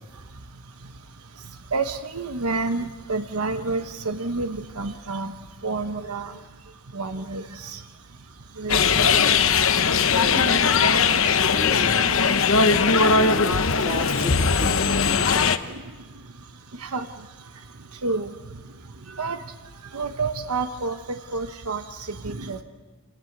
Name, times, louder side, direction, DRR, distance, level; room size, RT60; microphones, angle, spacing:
voice 1, 0.2-9.1 9.5-10.2 11.2-11.3 12.5-13.1 15.7-22.6, right 3 dB, 85° right, 7 dB, 1.1 m, -31 dB
sound 1, 8.7-15.6, left 5 dB, 65° left, 0.9 m, -19 dB
voice 2, 8.8-9.2 9.9-12.1 12.8-15.3, equal, 25° right, 0 dB, 3.5 m, -35 dB
28.0 x 18.5 x 8.0 m, 1.3 s
head